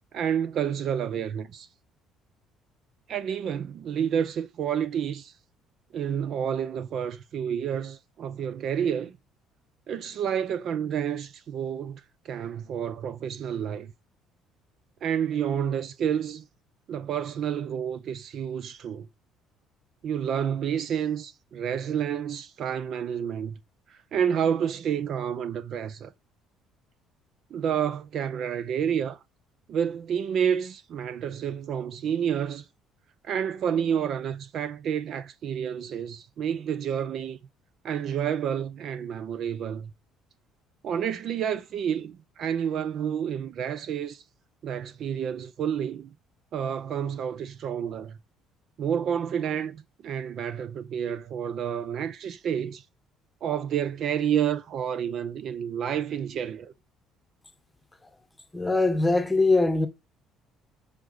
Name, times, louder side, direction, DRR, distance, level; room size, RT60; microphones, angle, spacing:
voice 1, 0.1-1.7 3.1-5.3 5.9-9.2 9.9-13.9 15.0-16.5 16.9-19.1 20.0-23.6 23.9-26.1 27.5-29.2 29.7-32.7 33.2-37.4 37.8-39.9 40.8-44.2 44.6-46.1 46.5-48.2 48.8-52.8 53.4-56.7, right 8 dB, 50° right, 0.6 m, -29 dB
voice 2, 58.5-59.9, left 3 dB, 10° left, 1.2 m, -22 dB
8.9 x 5.0 x 6.6 m
cardioid pair, 140°, 0 cm